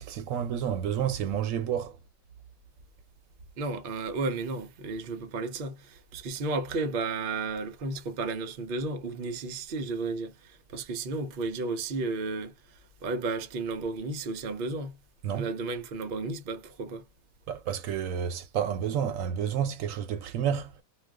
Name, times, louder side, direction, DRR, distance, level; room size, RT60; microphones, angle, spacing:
voice 1, 0.0-2.0 15.2-15.5 17.5-20.7, right 9 dB, 75° right, 1.0 m, -30 dB
voice 2, 3.6-15.0 15.3-17.1, right 3 dB, 50° right, 0.7 m, -33 dB
2.4 x 2.3 x 3.3 m
omnidirectional pair, 1.5 m